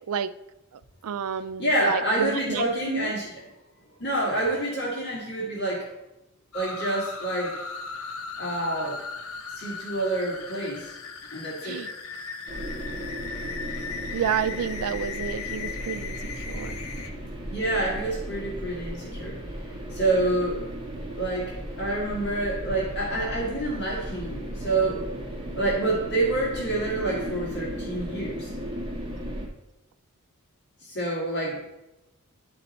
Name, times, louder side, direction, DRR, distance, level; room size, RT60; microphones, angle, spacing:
voice 1, 0.7-3.1 11.6-11.9 14.1-16.8, right 7 dB, 80° right, 13 dB, 0.4 m, -30 dB
voice 2, 1.6-3.3 4.0-5.9 6.5-7.6 8.4-9.0 9.5-10.9 11.3-11.8 17.5-19.4 19.9-20.6 21.2-25.0 25.5-28.5 30.8-31.6, right 2 dB, 50° left, -4 dB, 1.9 m, -27 dB
sound 1, 6.5-17.1, left 5 dB, 75° left, 0.8 m, -37 dB
sound 2, 12.5-29.5, right 1 dB, 20° right, 1.4 m, -36 dB
10.5 x 4.1 x 4.3 m, 0.93 s
head